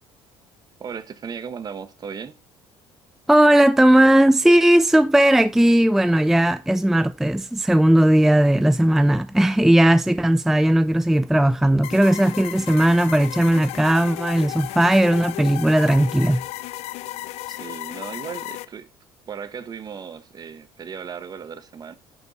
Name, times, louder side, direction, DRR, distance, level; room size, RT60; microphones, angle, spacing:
voice 1, 0.8-2.3 17.5-18.9 19.3-22.0, right 6 dB, 35° right, 1.2 m, -36 dB
voice 2, 3.3-16.4, right 1 dB, 5° right, 0.4 m, -17 dB
sound 1, 11.8-18.7, left 16 dB, 75° left, 0.6 m, -34 dB
10.5 x 5.2 x 4.0 m
cardioid pair, 100°, 11 cm